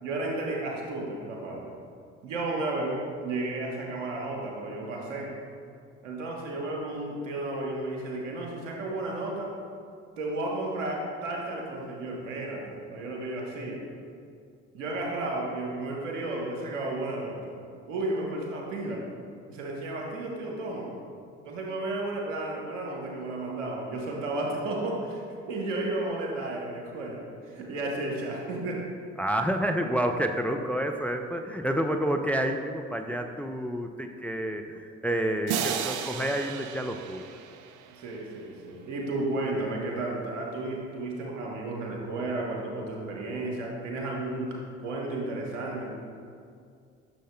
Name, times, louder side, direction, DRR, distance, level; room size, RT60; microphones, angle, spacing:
voice 1, 0.0-1.7 2.2-5.3 6.0-9.5 10.2-13.8 14.7-17.5 17.9-19.0 19.5-20.9 21.4-28.8 31.6-31.7 37.9-45.9, right 2 dB, 85° right, -1 dB, 1.1 m, -33 dB
voice 2, 29.2-37.2, right 1 dB, 5° left, 5 dB, 0.3 m, -29 dB
sound 1, 35.5-38.3, right 7 dB, 55° right, 0.6 m, -34 dB
10.0 x 6.4 x 2.2 m, 2.3 s
hypercardioid pair, 50°, 37 cm